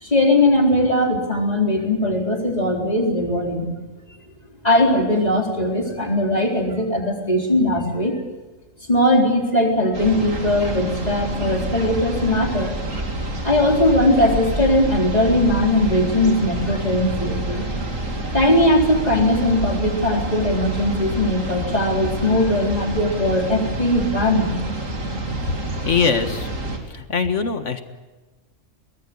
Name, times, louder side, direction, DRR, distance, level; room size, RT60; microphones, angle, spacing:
voice 1, 0.0-3.7 4.6-8.2 8.9-12.7 13.4-17.6 18.3-24.5, left 1 dB, 30° left, 1 dB, 4.3 m, -19 dB
sound 1, 9.9-26.8, right 1 dB, 85° right, 3.4 m, -28 dB
voice 2, 25.9-26.5 26.9-27.8, left 5 dB, 70° left, 8 dB, 1.9 m, -21 dB
23.0 x 19.5 x 8.5 m, 1.2 s
omnidirectional pair, 1.3 m